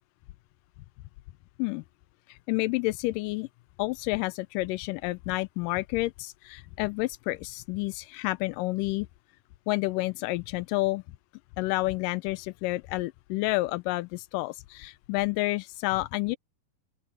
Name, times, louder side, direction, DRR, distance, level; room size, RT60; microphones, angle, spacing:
voice 1, 2.3-3.5 3.8-9.1 9.7-11.0 11.6-16.4, left 21 dB, 90° left, 1.9 m, -29 dB
open air
omnidirectional pair, 4.4 m